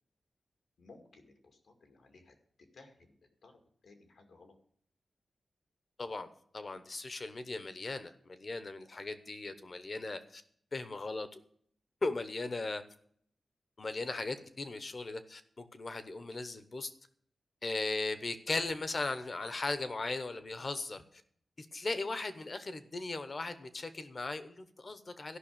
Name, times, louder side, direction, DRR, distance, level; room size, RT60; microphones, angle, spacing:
voice 1, 0.8-2.4 2.7-3.2 3.4-4.5, left 3 dB, 75° left, 5 dB, 2.2 m, -58 dB
voice 2, 6.5-10.4 10.7-11.4 12.0-12.8 13.8-16.9 17.6-21.0 21.6-25.4, left 3 dB, 35° left, 11 dB, 1.0 m, -38 dB
13.0 x 6.0 x 8.9 m, 0.62 s
wide cardioid pair, 170°, 0 cm